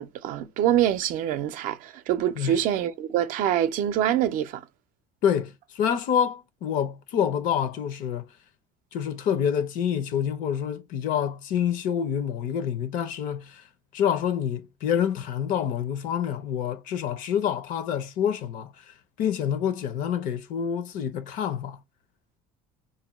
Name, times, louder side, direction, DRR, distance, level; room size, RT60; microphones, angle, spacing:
voice 1, 0.0-4.6, right 11 dB, 60° right, 0.5 m, -25 dB
voice 2, 5.2-8.3 8.9-13.6 13.9-21.8, left 8 dB, 60° left, 0.6 m, -27 dB
2.6 x 2.2 x 4.0 m
cardioid pair, 140°, 16 cm